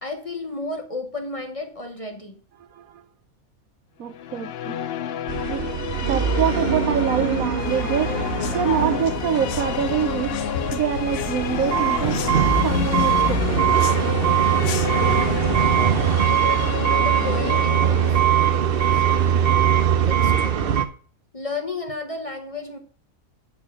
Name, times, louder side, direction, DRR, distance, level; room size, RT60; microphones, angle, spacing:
voice 1, 0.0-2.4 7.8-8.2 16.2-19.3 20.1-20.8 21.3-22.8, left 2 dB, 30° left, 0.9 m, -34 dB
voice 2, 2.7-3.0 4.0-4.8 5.5-5.7 6.0-8.1 8.5-10.4 10.7-12.2 12.6-13.9 14.4-14.5, right 8 dB, 80° right, 1.3 m, -25 dB
sound 1, 4.1-20.1, left 9 dB, 65° left, 0.6 m, -31 dB
sound 2, 5.3-20.8, right 8 dB, 50° right, 0.8 m, -22 dB
sound 3, 7.6-15.4, left 9 dB, 80° left, 1.2 m, -31 dB
9.5 x 4.4 x 7.3 m
omnidirectional pair, 1.4 m